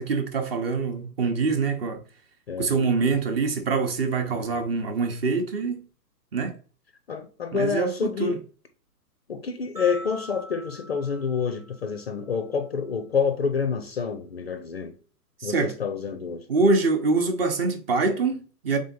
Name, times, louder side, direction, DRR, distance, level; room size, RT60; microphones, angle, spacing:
voice 1, 0.0-2.0 2.6-5.8 6.3-6.5 7.5-8.4 15.4-15.7 16.5-18.8, right 4 dB, 40° right, 0.7 m, -24 dB
voice 2, 4.2-4.6 7.1-8.4 9.3-14.9 15.4-16.5, left 6 dB, 40° left, 0.4 m, -28 dB
sound 1, 9.8-12.1, equal, 75° right, 1.0 m, -42 dB
3.6 x 3.5 x 3.9 m
hypercardioid pair, 145°, 48 cm